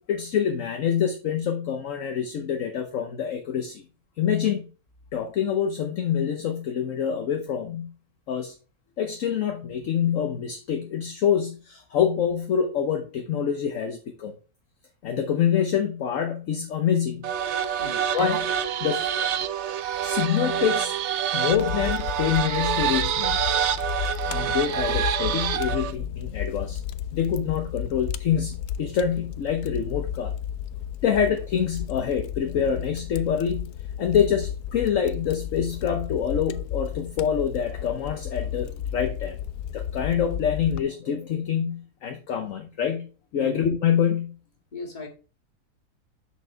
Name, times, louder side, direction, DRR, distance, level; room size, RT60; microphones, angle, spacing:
voice 1, 0.0-3.8 4.2-4.7 5.1-7.9 8.3-8.5 9.0-14.3 15.0-17.3 18.1-18.5 18.8-19.1 20.0-21.0 21.3-23.5 24.3-26.8 27.1-30.3 31.0-33.7 34.0-39.4 39.7-44.4, left 8 dB, 60° left, 5 dB, 1.2 m, -26 dB
sound 1, 17.2-26.0, right 9 dB, 60° right, 0.8 m, -26 dB
Fire, 21.5-40.8, left 10 dB, 85° left, 1.1 m, -33 dB
voice 2, 44.7-45.1, left 2 dB, 30° left, 1 dB, 2.0 m, -36 dB
6.5 x 6.4 x 3.3 m, 0.34 s
omnidirectional pair, 1.6 m